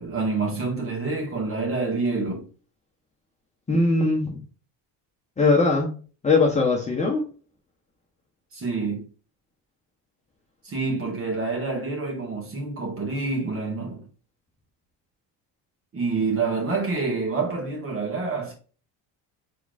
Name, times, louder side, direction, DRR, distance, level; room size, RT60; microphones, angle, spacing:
voice 1, 0.0-2.4 8.5-9.0 10.6-14.0 15.9-18.5, right 3 dB, 35° right, 2.0 m, -27 dB
voice 2, 3.7-4.4 5.4-6.0 6.2-7.2, left 3 dB, 15° left, 1.0 m, -20 dB
4.3 x 3.7 x 2.6 m
cardioid pair, 135°, 40 cm